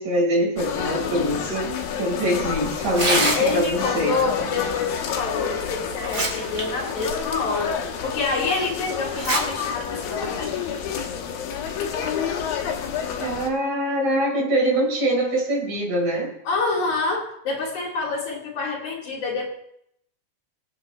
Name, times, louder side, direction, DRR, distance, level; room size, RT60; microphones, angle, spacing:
voice 1, 0.0-1.7 2.0-4.2 13.2-16.3, right 1 dB, 55° right, -2 dB, 5.6 m, -23 dB
sound 1, 0.6-13.5, left 8 dB, 85° left, 3.1 m, -29 dB
Tearing, 2.8-3.8 5.3-5.4 5.9-6.6 7.0-7.1 7.8-7.9 9.1-9.4 9.8-9.9 10.7-11.0, right 2 dB, 30° right, 2.7 m, -24 dB
voice 2, 3.3-10.8 16.5-19.5, left 3 dB, 60° left, -3 dB, 3.9 m, -27 dB
24.5 x 8.7 x 3.2 m, 0.73 s
omnidirectional pair, 4.0 m